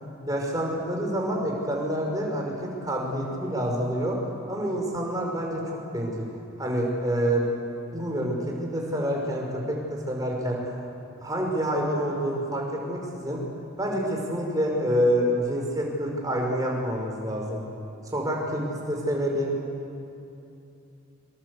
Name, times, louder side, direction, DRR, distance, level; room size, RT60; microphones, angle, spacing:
voice 1, 0.3-4.2 4.5-6.3 6.6-7.6 7.9-10.8 11.2-13.4 13.8-17.6 18.1-19.5, equal, 15° right, -1 dB, 5.2 m, -27 dB
26.0 x 25.0 x 8.2 m, 2.7 s
head